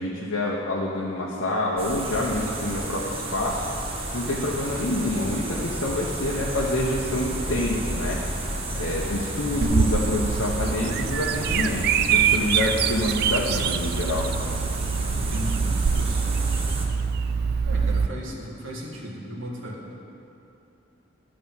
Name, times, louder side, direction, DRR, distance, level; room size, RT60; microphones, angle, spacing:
voice 1, 0.0-8.2 8.8-14.3, left 1 dB, 85° left, -5 dB, 1.1 m, -27 dB
sound 1, 1.8-16.9, right 2 dB, 30° right, 1.0 m, -31 dB
sound 2, 2.1-11.8, left 2 dB, 45° left, 1.0 m, -45 dB
voice 2, 8.7-9.1 15.1-16.4 17.6-19.9, equal, 75° right, -3 dB, 1.7 m, -36 dB
Bird vocalization bird call bird song, 9.6-18.1, right 6 dB, 50° right, 0.3 m, -25 dB
11.5 x 5.0 x 7.3 m, 3.0 s
head